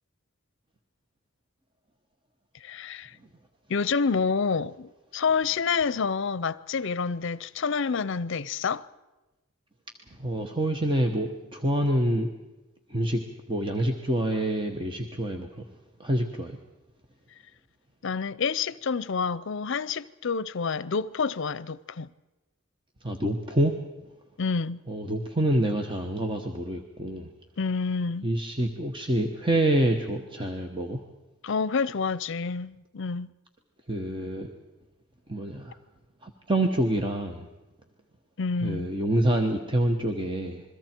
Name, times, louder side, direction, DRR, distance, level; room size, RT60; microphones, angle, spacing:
voice 1, 2.6-3.1 3.7-8.9 18.0-22.1 24.4-24.8 27.6-28.3 31.4-33.3 38.4-38.9, left 5 dB, 65° left, 0.6 m, -28 dB
voice 2, 10.1-12.3 12.9-15.6 16.0-16.6 23.0-23.8 24.9-27.3 28.2-31.0 33.9-34.7 35.3-35.8 36.2-37.5 38.6-40.6, right 1 dB, 25° right, 1.2 m, -27 dB
28.0 x 22.0 x 4.5 m
head